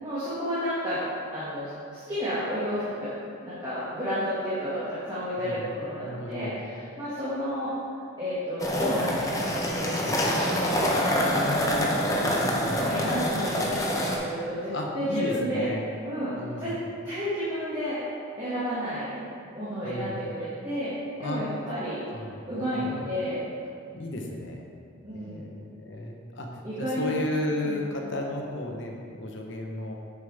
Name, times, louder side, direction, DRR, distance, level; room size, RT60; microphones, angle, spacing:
voice 1, 0.0-1.0 1.3-3.1 3.4-7.7 8.2-11.1 12.0-15.7 16.0-16.3 16.6-16.7 17.0-18.0 18.4-19.1 19.5-20.9 21.2-22.0 22.5-23.4 25.0-25.5 26.6-27.1 27.6-27.9, equal, 20° right, -13 dB, 1.8 m, -31 dB
voice 2, 6.0-6.6 11.2-11.9 12.2-13.0 14.7-15.8 16.4-16.8 19.8-20.2 21.2-21.4 22.1-23.1 23.9-24.6 25.1-29.9, left 1 dB, 55° left, 1 dB, 0.9 m, -34 dB
sound 1, 8.6-14.2, equal, 15° left, 0.7 m, -26 dB
9.0 x 7.2 x 3.4 m, 2.4 s
head